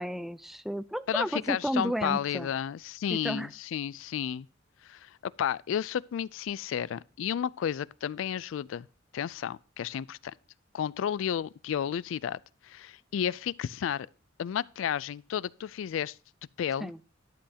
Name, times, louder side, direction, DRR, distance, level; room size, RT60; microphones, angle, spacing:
voice 1, 0.0-2.5 3.1-3.5 16.8-17.0, equal, ahead, 0.3 m, -32 dB
voice 2, 1.1-4.5 4.8-8.9 9.1-10.3 10.7-14.1 14.4-16.2 16.6-16.9, left 9 dB, 80° left, 0.3 m, -32 dB
11.5 x 7.7 x 2.8 m
head